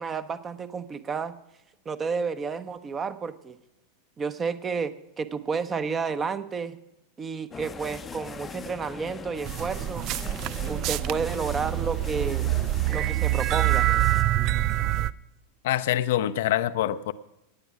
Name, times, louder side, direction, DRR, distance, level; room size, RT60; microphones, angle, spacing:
voice 1, 0.0-1.3 1.8-3.6 4.2-6.8 7.2-10.1 10.7-12.5 12.9-13.9, right 5 dB, 20° right, 13 dB, 0.8 m, -31 dB
sound 1, 7.5-14.2, left 5 dB, 20° left, 0.7 m, -40 dB
sound 2, 9.5-15.1, right 15 dB, 40° right, 0.4 m, -26 dB
voice 2, 15.6-17.1, left 12 dB, 55° left, 12 dB, 0.5 m, -25 dB
18.0 x 9.0 x 6.0 m, 0.92 s
figure-of-eight pair, 90°, 0 cm